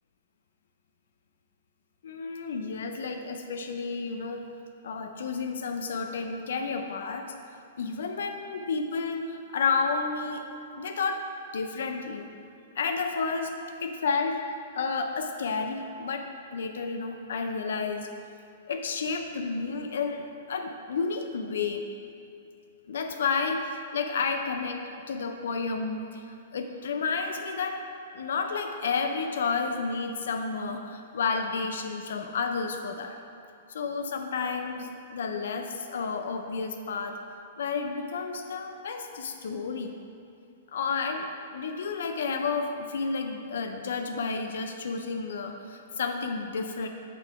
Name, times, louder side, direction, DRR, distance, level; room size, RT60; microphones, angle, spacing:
voice 1, 2.0-4.5 4.8-7.3 7.8-11.2 11.5-12.3 12.8-13.5 13.8-14.4 14.7-18.1 18.7-21.9 22.9-27.8 28.1-33.2 33.7-37.2 37.6-39.9 40.7-46.9, left 4 dB, 80° left, 6 dB, 0.4 m, -31 dB
6.8 x 3.7 x 4.7 m, 2.6 s
hypercardioid pair, 140°, 0 cm